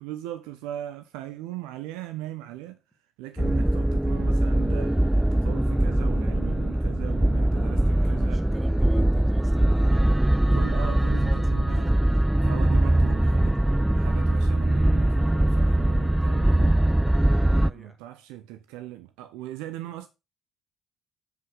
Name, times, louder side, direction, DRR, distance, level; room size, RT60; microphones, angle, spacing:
voice 1, 0.0-2.8 3.2-8.5 10.5-11.9 12.4-13.5 13.9-16.8 17.4-20.1, right 13 dB, 70° right, 0.5 m, -39 dB
sound 1, 3.4-17.7, right 1 dB, 5° right, 0.3 m, -22 dB
voice 2, 7.6-10.2 11.0-12.2 12.8-13.1 13.3-13.9 17.4-18.0, right 2 dB, 20° right, 1.9 m, -46 dB
7.6 x 5.0 x 4.8 m
figure-of-eight pair, 45°, 0 cm